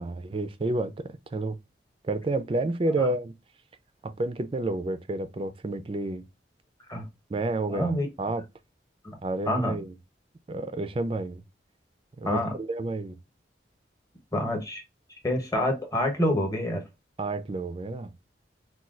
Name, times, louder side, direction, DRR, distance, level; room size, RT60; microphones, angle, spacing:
voice 1, 0.0-1.6 2.0-3.3 4.0-6.2 7.3-8.4 9.2-9.9 10.5-11.4 12.2-13.2 17.2-18.1, right 2 dB, 30° right, 0.4 m, -30 dB
voice 2, 7.7-8.1 9.0-9.2 9.5-9.8 12.2-12.5 14.3-14.8 15.2-16.8, left 1 dB, 20° left, 0.9 m, -27 dB
4.2 x 2.3 x 2.3 m
head